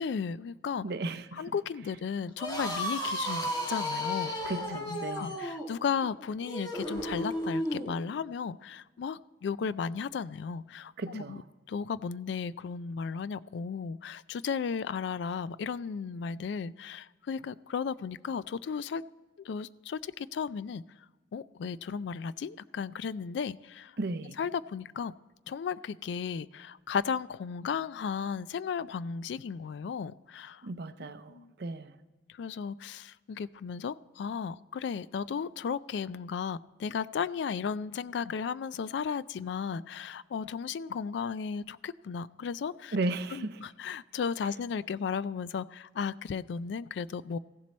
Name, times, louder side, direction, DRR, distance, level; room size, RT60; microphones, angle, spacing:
voice 1, 0.0-0.9 1.4-4.3 4.9-11.4 11.7-19.0 19.4-20.8 21.3-24.0 24.4-25.1 25.5-30.7 31.3-31.5 32.3-43.0 43.3-47.4, left 6 dB, 70° left, 0.3 m, -35 dB
voice 2, 0.8-1.5 4.4-5.4 11.0-11.4 24.0-24.4 30.6-32.0 42.9-43.6, right 2 dB, 65° right, 0.6 m, -35 dB
sound 1, 2.3-7.9, equal, 25° left, 1.6 m, -34 dB
15.5 x 7.4 x 4.2 m
head